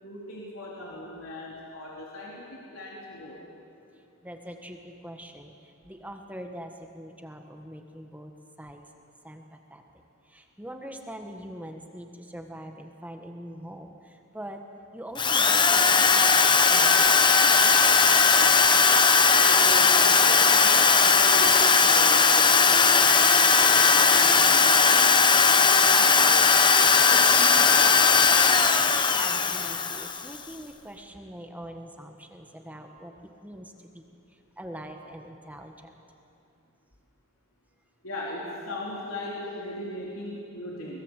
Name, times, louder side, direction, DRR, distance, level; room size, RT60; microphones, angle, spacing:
voice 1, 0.0-3.4 19.4-25.2 25.6-28.2 38.0-41.0, left 1 dB, 90° left, -4 dB, 3.9 m, -38 dB
voice 2, 4.2-5.5 5.8-8.3 8.6-8.8 9.2-9.4 9.7-9.8 10.3-14.6 14.9-17.2 17.5-17.9 29.1-33.1 33.4-34.0 34.6-35.9, equal, 10° right, 4 dB, 1.4 m, -43 dB
Drill, 15.2-30.4, left 5 dB, 20° left, 1.0 m, -19 dB
24.5 x 20.5 x 8.2 m, 2.6 s
head